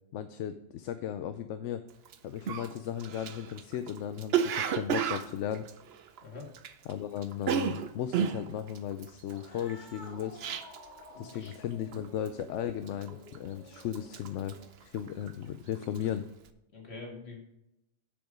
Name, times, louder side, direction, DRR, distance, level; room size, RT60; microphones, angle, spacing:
voice 1, 0.1-1.8 2.2-5.6 6.9-10.4 11.2-16.2, left 10 dB, 80° left, 10 dB, 0.9 m, -36 dB
Cough, 2.0-2.1 2.5-6.9 7.2-11.0 11.3-11.6 11.9-12.4 12.9-13.5 13.8-15.4 15.7-16.1, right 7 dB, 60° right, 0.9 m, -32 dB
Cat, 9.2-14.9, left 1 dB, 40° left, 2.1 m, -52 dB
voice 2, 11.1-11.5 16.7-17.4, left 3 dB, 60° left, 0 dB, 2.4 m, -45 dB
7.7 x 7.3 x 5.1 m, 0.87 s
omnidirectional pair, 1.2 m